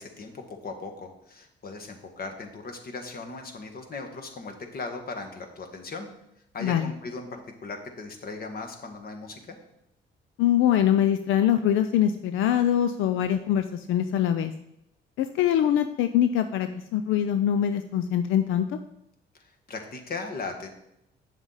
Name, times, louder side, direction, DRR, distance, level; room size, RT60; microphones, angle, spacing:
voice 1, 0.0-6.1 6.5-9.6 19.4-20.7, left 3 dB, 50° left, 4 dB, 1.6 m, -38 dB
voice 2, 10.4-14.5 15.2-18.8, left 10 dB, 85° left, 9 dB, 0.5 m, -23 dB
9.0 x 7.1 x 4.0 m, 0.81 s
cardioid pair, 90°, 20 cm